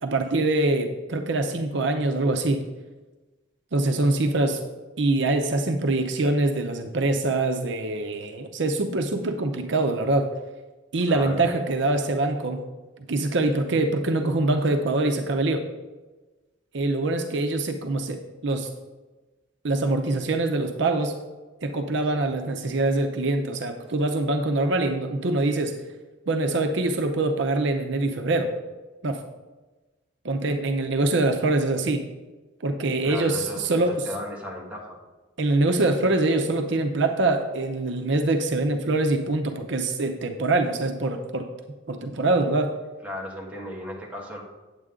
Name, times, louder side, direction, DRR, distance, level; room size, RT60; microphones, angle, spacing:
voice 1, 0.0-2.6 3.7-4.6 5.0-10.3 10.9-12.6 13.1-15.6 16.7-18.7 19.6-21.2 21.6-25.7 26.3-28.5 29.0-29.2 30.2-32.0 32.6-34.0 35.4-41.5 41.9-42.7, right 2 dB, 65° right, 4 dB, 0.7 m, -24 dB
voice 2, 11.1-11.4 22.1-22.3 33.0-35.0 43.0-44.4, left 1 dB, 5° right, -4 dB, 1.6 m, -35 dB
8.9 x 8.0 x 3.7 m, 1.2 s
head